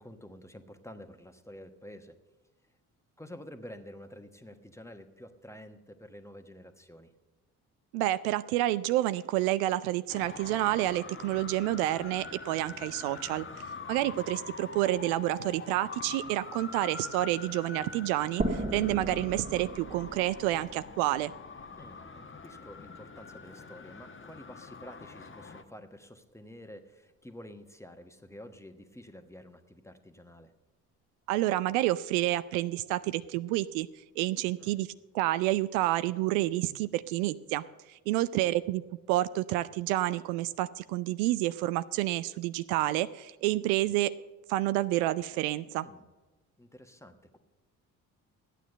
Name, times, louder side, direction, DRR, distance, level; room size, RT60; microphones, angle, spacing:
voice 1, 0.0-2.2 3.2-7.1 21.8-30.5 34.6-34.8 45.8-46.1 46.6-47.4, equal, 5° left, 7 dB, 1.2 m, -49 dB
voice 2, 7.9-13.5 13.9-21.3 31.3-33.9 34.2-34.9 35.1-38.8 39.1-44.1 44.5-45.9, right 15 dB, 70° right, 15 dB, 0.5 m, -29 dB
Traffic noise roadway noise, 10.1-25.6, left 4 dB, 25° left, 1.2 m, -44 dB
sound 1, 18.4-21.9, right 1 dB, 20° right, 1.8 m, -36 dB
13.5 x 9.2 x 6.6 m, 1.2 s
figure-of-eight pair, 45°, 45 cm